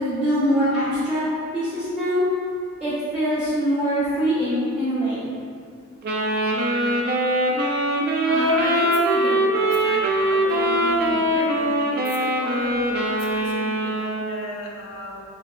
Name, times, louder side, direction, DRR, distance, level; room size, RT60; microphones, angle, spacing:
voice 1, 0.0-5.3, equal, 5° right, -13 dB, 0.9 m, -23 dB
Wind instrument woodwind instrument, 6.0-14.5, right 1 dB, 45° right, 0.5 m, -22 dB
voice 2, 8.2-12.9 13.3-15.2, left 1 dB, 80° left, -2 dB, 0.7 m, -33 dB
5.0 x 3.6 x 2.3 m, 2.1 s
head